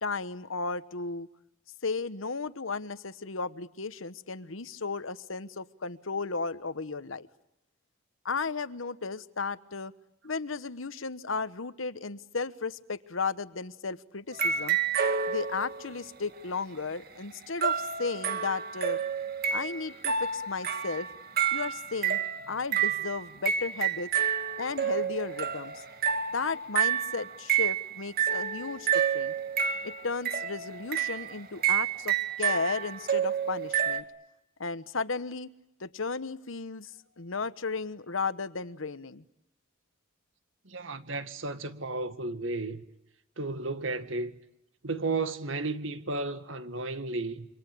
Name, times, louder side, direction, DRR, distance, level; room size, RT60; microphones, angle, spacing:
voice 1, 0.0-1.3 1.8-7.3 8.2-9.9 10.2-14.8 15.3-19.0 19.5-21.1 21.5-24.1 24.6-25.8 26.3-29.3 29.8-34.0 34.6-35.5 35.8-36.9 37.2-39.2, left 4 dB, 80° left, 1.2 m, -34 dB
sound 1, 14.3-15.9 17.6-34.0, right 8 dB, 45° right, 2.1 m, -29 dB
voice 2, 40.7-42.8 43.4-44.3 44.8-47.5, right 3 dB, 75° right, 1.9 m, -33 dB
27.5 x 25.5 x 8.6 m
head